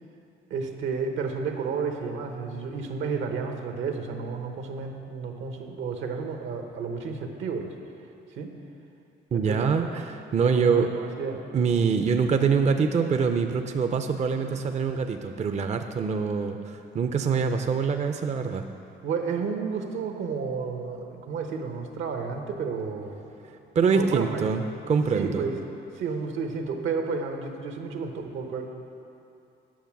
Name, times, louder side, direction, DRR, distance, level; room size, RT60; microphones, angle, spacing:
voice 1, 0.5-7.7 8.3-8.5 9.3-9.8 10.4-11.4 14.5-14.7 19.0-23.3 23.9-24.5 24.8-25.6 25.9-28.7, right 5 dB, 80° right, 4 dB, 1.0 m, -31 dB
voice 2, 9.3-10.0 10.3-10.9 11.5-18.7 23.8-25.5, right 5 dB, 35° right, 6 dB, 0.5 m, -24 dB
9.4 x 6.7 x 5.9 m, 2.8 s
cardioid pair, 90°, 20 cm